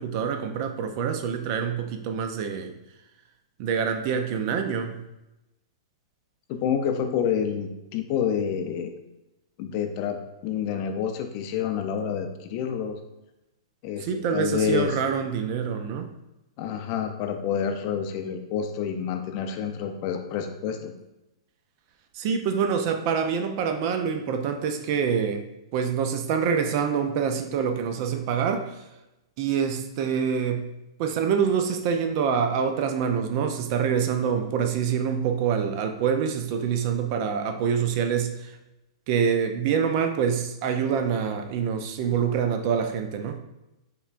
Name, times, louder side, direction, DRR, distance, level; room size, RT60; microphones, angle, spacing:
voice 1, 0.0-2.7 3.6-5.0 14.0-16.1 22.1-25.4 25.7-28.8 29.4-30.7 31.0-38.6 39.1-43.4, right 7 dB, 45° right, 6 dB, 0.4 m, -26 dB
voice 2, 6.5-8.9 9.6-13.0 13.8-14.9 16.6-20.9, left 7 dB, 45° left, 6 dB, 0.4 m, -28 dB
5.4 x 2.2 x 2.5 m, 0.94 s
hypercardioid pair, 130°, 3 cm